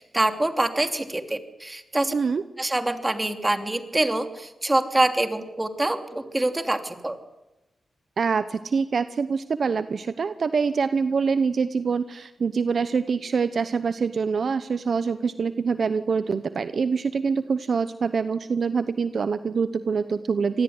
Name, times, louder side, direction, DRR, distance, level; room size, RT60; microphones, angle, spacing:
voice 1, 0.0-2.1 2.6-7.2, right 1 dB, 20° right, 7 dB, 3.0 m, -25 dB
voice 2, 2.1-2.4 8.2-20.6, right 5 dB, 60° right, 12 dB, 0.9 m, -25 dB
26.0 x 19.0 x 9.6 m, 1.0 s
cardioid pair, 65°, 0 cm